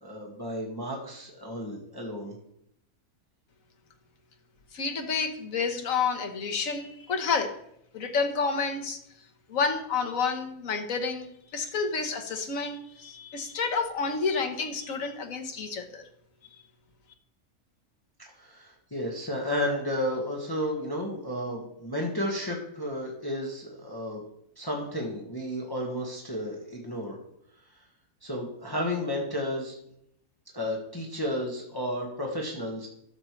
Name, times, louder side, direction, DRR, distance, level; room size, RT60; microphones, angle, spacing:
voice 1, 0.0-2.4 18.4-24.2 24.6-27.2 28.2-29.7 30.5-32.9, left 1 dB, 15° left, -2 dB, 1.5 m, -32 dB
voice 2, 4.7-7.5 7.9-9.0 9.5-16.0, left 5 dB, 70° left, 5 dB, 1.5 m, -29 dB
12.5 x 7.6 x 3.2 m, 0.72 s
omnidirectional pair, 1.5 m